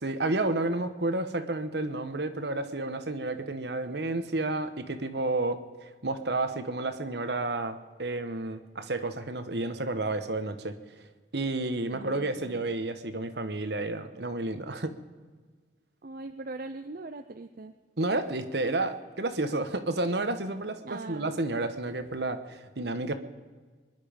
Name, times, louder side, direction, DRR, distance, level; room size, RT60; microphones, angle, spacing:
voice 1, 0.0-5.6 6.0-10.7 11.3-14.9 18.0-23.1, right 2 dB, 70° right, 9 dB, 1.2 m, -31 dB
voice 2, 11.9-12.7 16.0-17.7 20.8-21.3, right 3 dB, 50° right, 7 dB, 0.6 m, -41 dB
23.5 x 11.0 x 5.2 m, 1.4 s
head